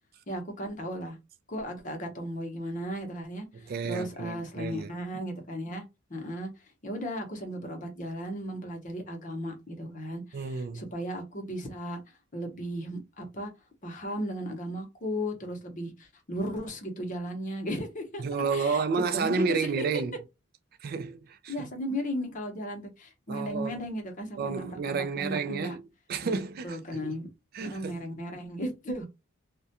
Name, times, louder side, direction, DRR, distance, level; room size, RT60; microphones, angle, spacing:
voice 1, 0.3-1.2 1.5-5.8 6.1-6.5 6.8-12.0 12.3-13.5 13.8-18.2 18.5-19.9 21.5-25.7 26.2-27.3 27.6-29.0, equal, 40° left, 0.8 m, -36 dB
voice 2, 3.7-4.9 10.3-10.8 18.2-20.1 20.8-21.5 23.3-23.8 24.4-25.8 26.1-27.1 27.5-28.0, right 5 dB, 50° right, 0.3 m, -31 dB
2.3 x 2.1 x 2.7 m
head